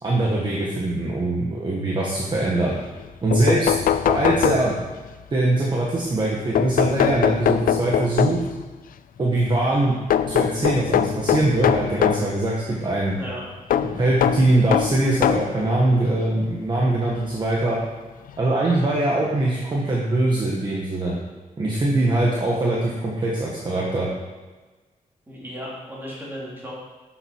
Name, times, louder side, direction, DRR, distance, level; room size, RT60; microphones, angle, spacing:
voice 1, 0.0-2.7 3.2-3.7 4.1-4.7 5.3-8.4 9.2-9.9 10.3-13.2 13.8-17.8 18.4-21.2 21.6-24.1, right 2 dB, 30° right, -4 dB, 1.6 m, -22 dB
sound 1, 3.0-3.1 3.3-5.1 6.6-8.6 10.1-12.3 13.7-15.6 16.4-16.5 17.9-18.0 18.3-18.4, left 9 dB, 75° left, 0.5 m, -22 dB
voice 2, 25.3-26.7, equal, 15° right, -6 dB, 3.4 m, -35 dB
12.5 x 8.0 x 4.7 m, 1.3 s
wide cardioid pair, 165°, 15 cm